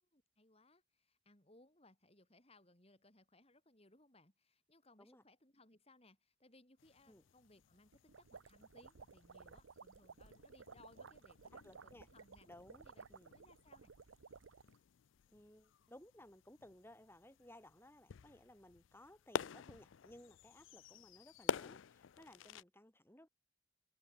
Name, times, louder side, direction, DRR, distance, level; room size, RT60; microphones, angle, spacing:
voice 1, 0.0-12.5 12.8-13.1 13.3-13.9, left 2 dB, 30° left, 3.5 m, -67 dB
sound 1, 6.8-22.6, left 7 dB, 65° left, 0.4 m, -49 dB
sound 2, 7.9-14.8, right 5 dB, 70° right, 0.7 m, -57 dB
voice 2, 11.6-12.1 12.5-13.4 15.3-23.3, left 1 dB, 10° left, 3.8 m, -60 dB
open air
head